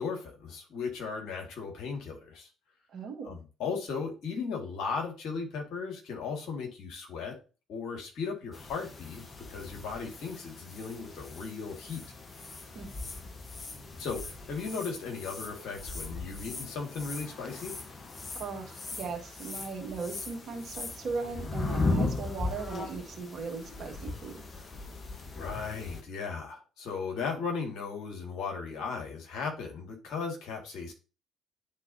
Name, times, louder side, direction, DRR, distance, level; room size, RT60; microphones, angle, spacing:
voice 1, 0.0-2.5 3.2-7.4 7.7-9.2 9.5-12.0 14.0-17.7 25.3-30.9, left 5 dB, 55° left, 1 dB, 1.9 m, -36 dB
voice 2, 2.9-3.4 12.7-12.9 18.3-24.4, right 4 dB, 50° right, 3 dB, 1.5 m, -38 dB
sound 1, 8.5-26.0, left 3 dB, 35° left, 1.0 m, -38 dB
10.5 x 3.8 x 2.7 m, 0.33 s
figure-of-eight pair, 45°, 0 cm